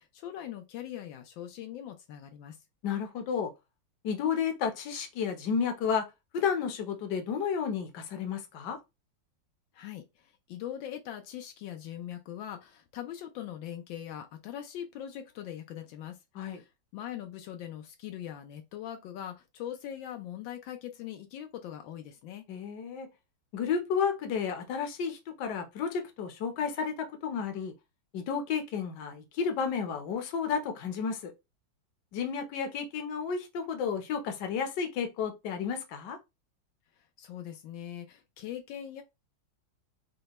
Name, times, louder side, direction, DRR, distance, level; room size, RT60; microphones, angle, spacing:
voice 1, 0.0-2.6 9.7-22.4 37.2-39.0, left 10 dB, 85° left, 1.4 m, -41 dB
voice 2, 2.8-3.5 4.0-6.1 6.3-8.8 16.3-16.6 22.5-23.1 23.5-27.7 28.1-31.3 32.1-36.2, left 6 dB, 70° left, 1.4 m, -32 dB
5.3 x 2.2 x 2.9 m
omnidirectional pair, 2.0 m